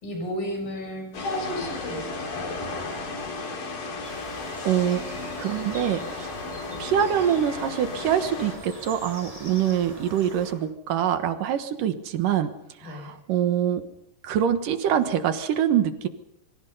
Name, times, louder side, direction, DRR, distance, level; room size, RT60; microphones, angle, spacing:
voice 1, 0.0-2.5 12.8-13.2, equal, 80° left, 3 dB, 8.3 m, -33 dB
sound 1, 1.1-8.6, left 3 dB, 60° left, 5.2 m, -34 dB
sound 2, 4.0-10.5, right 1 dB, 10° right, 5.5 m, -43 dB
voice 2, 4.6-5.0 5.4-6.3 6.8-12.5 12.8-13.8 14.2-16.1, right 9 dB, 70° right, 9 dB, 2.9 m, -24 dB
26.0 x 23.5 x 5.5 m, 0.81 s
omnidirectional pair, 4.0 m